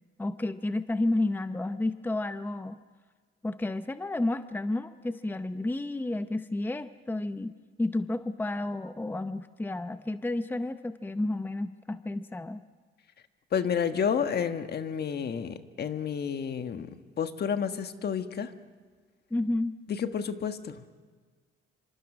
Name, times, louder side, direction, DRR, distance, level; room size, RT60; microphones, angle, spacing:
voice 1, 0.2-2.8 3.4-12.6 19.3-19.8, left 2 dB, 10° left, 10 dB, 0.7 m, -31 dB
voice 2, 13.5-16.9 17.2-18.5 19.9-20.9, left 7 dB, 55° left, 8 dB, 1.4 m, -30 dB
27.0 x 25.5 x 6.2 m, 1.5 s
cardioid pair, 90°, 20 cm